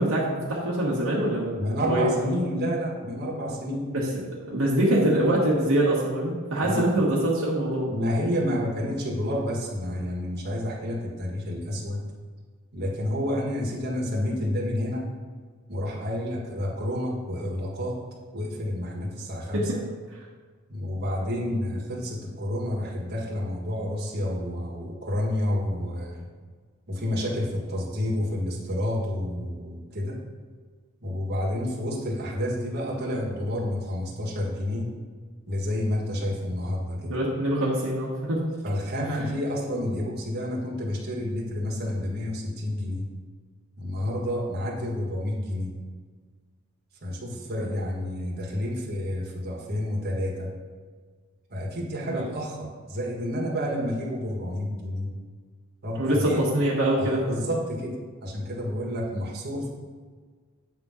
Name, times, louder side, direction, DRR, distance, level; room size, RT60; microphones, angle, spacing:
voice 1, 0.0-1.5 1.8-2.0 3.8-4.1 4.3-7.9 19.5-19.6 37.1-38.4 52.1-52.3 56.0-57.4, right 1 dB, 65° right, -5 dB, 1.3 m, -24 dB
voice 2, 1.5-3.9 6.6-6.9 7.8-12.0 12.7-15.0 15.7-18.0 18.3-19.8 20.7-26.3 26.9-30.2 31.0-34.9 35.5-37.2 38.6-43.1 43.8-45.7 47.0-50.5 51.5-55.1 55.8-56.4 57.0-59.7, left 1 dB, 50° right, -3 dB, 1.5 m, -29 dB
8.3 x 3.7 x 5.5 m, 1.5 s
head